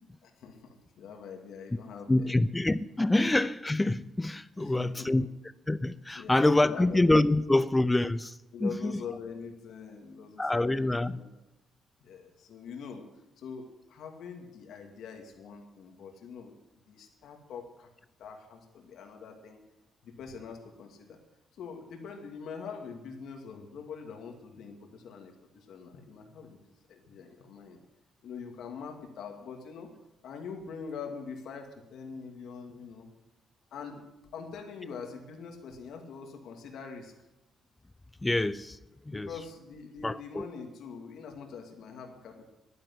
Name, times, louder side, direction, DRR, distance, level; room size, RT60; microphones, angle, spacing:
voice 1, 0.2-2.4 4.6-5.3 6.1-7.0 8.5-11.3 12.0-13.0 13.4-16.5 16.9-17.9 18.2-19.6 20.0-21.2 21.5-27.8 28.2-29.9 30.2-33.1 33.7-34.1 34.3-37.1 39.1-42.5, left 6 dB, 75° left, 3 dB, 2.4 m, -44 dB
voice 2, 2.1-5.3 5.7-9.0 10.4-11.2 38.2-38.8 39.1-39.3 40.0-40.5, left 2 dB, 15° left, 16 dB, 0.5 m, -26 dB
11.0 x 10.0 x 9.9 m, 0.94 s
cardioid pair, 90°, 0 cm